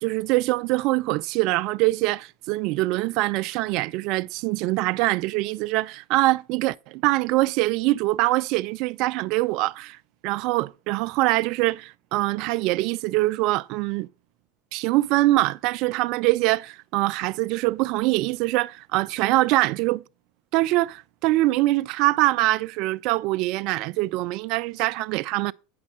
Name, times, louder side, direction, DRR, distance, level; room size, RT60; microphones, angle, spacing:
voice 1, 0.0-10.0 10.2-14.1 14.7-20.0 20.5-25.5, right 19 dB, 55° right, 0.4 m, -23 dB
9.3 x 6.0 x 6.0 m
figure-of-eight pair, 80°, 0 cm